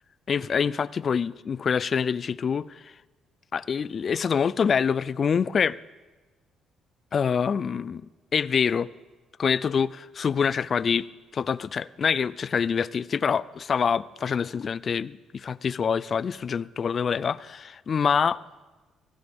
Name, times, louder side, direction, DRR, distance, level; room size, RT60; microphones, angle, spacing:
voice 1, 0.3-2.8 3.5-5.8 7.1-8.0 8.3-8.9 9.4-11.1 11.3-18.4, left 6 dB, 35° left, 0.3 m, -25 dB
19.5 x 15.0 x 3.6 m
cardioid pair, 145°, 0 cm